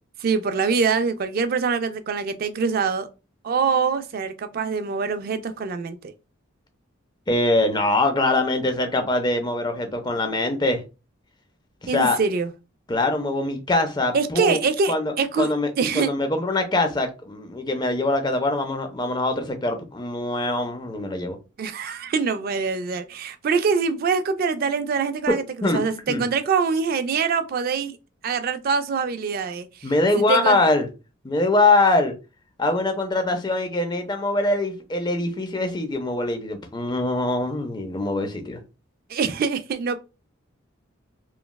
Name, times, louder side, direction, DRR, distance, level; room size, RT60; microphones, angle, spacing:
voice 1, 0.2-3.1 3.4-6.1 11.9-12.5 14.1-15.5 15.8-16.1 21.6-28.0 28.2-30.6 39.1-40.0, right 5 dB, 45° right, 0.3 m, -24 dB
voice 2, 7.3-10.8 11.8-12.2 12.9-14.6 14.9-15.7 15.9-21.4 25.3-25.8 26.1-26.2 29.8-30.9 31.2-32.1 32.6-38.6, left 2 dB, 20° left, 0.5 m, -23 dB
3.0 x 2.3 x 2.2 m
head